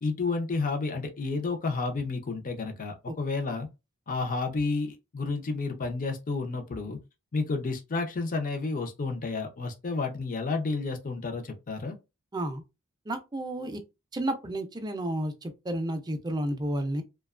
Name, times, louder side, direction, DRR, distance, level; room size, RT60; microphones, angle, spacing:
voice 1, 0.0-3.7 4.1-7.0 7.3-12.0, left 3 dB, 40° left, 0.5 m, -31 dB
voice 2, 12.3-12.6 13.1-13.8 14.1-17.0, right 1 dB, 20° right, 0.4 m, -31 dB
2.8 x 2.2 x 2.3 m
head